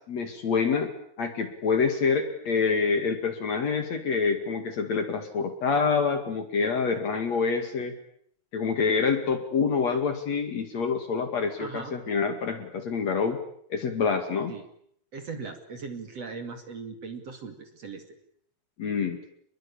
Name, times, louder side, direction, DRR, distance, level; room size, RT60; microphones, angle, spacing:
voice 1, 0.1-0.9 1.2-7.9 8.5-13.4 13.7-14.5 18.8-19.2, left 5 dB, 50° left, 7 dB, 3.1 m, -26 dB
voice 2, 11.6-12.0 14.5-14.6 15.1-18.0, right 4 dB, 45° right, 6 dB, 3.0 m, -39 dB
29.0 x 21.5 x 8.7 m, 0.67 s
omnidirectional pair, 4.5 m